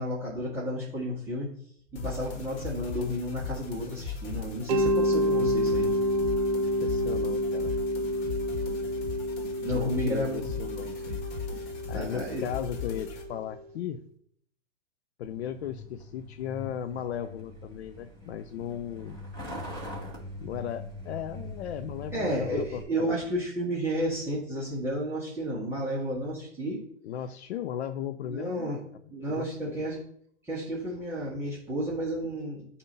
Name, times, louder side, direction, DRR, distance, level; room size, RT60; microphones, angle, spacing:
voice 1, 0.0-1.5 1.9-5.9 9.6-11.2 11.5-12.4 22.1-26.8 28.2-28.8 29.1-30.0 30.4-32.7, equal, 5° right, -8 dB, 1.5 m, -32 dB
sound 1, 2.0-13.3, left 5 dB, 45° left, 1.6 m, -38 dB
Mallet percussion, 4.7-13.4, equal, 55° right, 1.0 m, -29 dB
voice 2, 6.8-7.8 9.7-10.9 11.9-14.1 15.2-19.2 20.4-23.2 27.0-28.8 29.2-29.8, left 9 dB, 60° left, 10 dB, 0.5 m, -36 dB
Truck, 15.2-22.8, left 1 dB, 10° left, 1.9 m, -42 dB
8.4 x 2.8 x 5.4 m, 0.64 s
hypercardioid pair, 130°, 36 cm